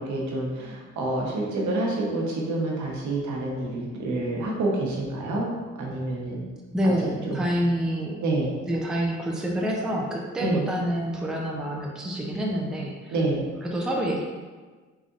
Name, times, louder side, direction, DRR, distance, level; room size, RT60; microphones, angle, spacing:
voice 1, 0.0-5.5 5.8-6.4 6.8-6.9 7.3-7.4 8.2-8.5 10.4-10.6 13.1-13.5, right 2 dB, 70° right, -2 dB, 1.0 m, -28 dB
voice 2, 6.7-8.2 8.7-13.1 13.6-14.2, equal, ahead, -1 dB, 0.4 m, -27 dB
3.8 x 3.3 x 2.5 m, 1.4 s
cardioid pair, 90°, 30 cm